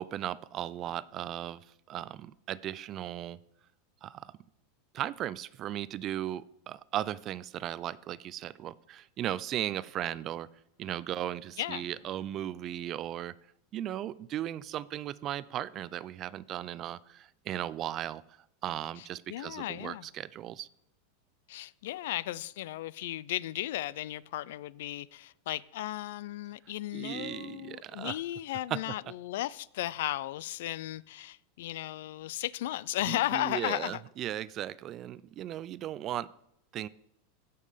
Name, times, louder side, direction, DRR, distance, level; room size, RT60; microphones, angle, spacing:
voice 1, 0.0-3.4 4.0-4.3 4.9-10.5 10.8-13.3 13.7-18.2 18.6-20.7 26.9-28.2 28.7-29.0 33.1-36.3 36.7-36.9, right 12 dB, 30° right, 0.3 m, -37 dB
sound 1, 10.4-12.3, left 3 dB, 50° left, 2.8 m, -64 dB
voice 2, 19.0-20.1 21.5-34.0, left 14 dB, 70° left, 0.4 m, -35 dB
16.0 x 5.5 x 5.1 m
supercardioid pair, 155°, 0 cm